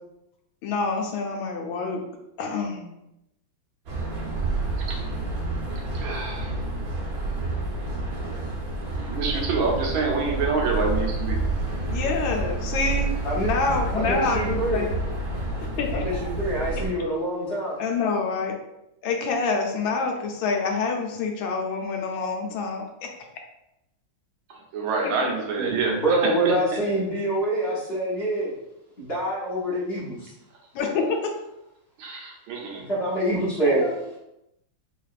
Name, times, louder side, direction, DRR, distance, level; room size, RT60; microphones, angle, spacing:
voice 1, 0.6-2.0 2.4-2.8 11.9-13.1 13.3-15.0 15.8-16.2 17.8-18.5 19.0-22.9 25.0-25.3 30.7-31.3 33.6-33.9, left 4 dB, 80° left, 3 dB, 1.3 m, -27 dB
sound 1, 3.9-16.9, right 2 dB, 60° right, 1.1 m, -29 dB
voice 2, 5.9-6.5 9.1-11.4 24.5-26.5 32.0-32.8, right 4 dB, 85° right, 0 dB, 1.6 m, -27 dB
voice 3, 13.9-14.8 15.9-17.8 25.6-28.5 29.0-30.3 32.7-33.8, right 1 dB, 40° left, -7 dB, 0.9 m, -26 dB
3.7 x 3.3 x 2.4 m, 0.86 s
omnidirectional pair, 2.2 m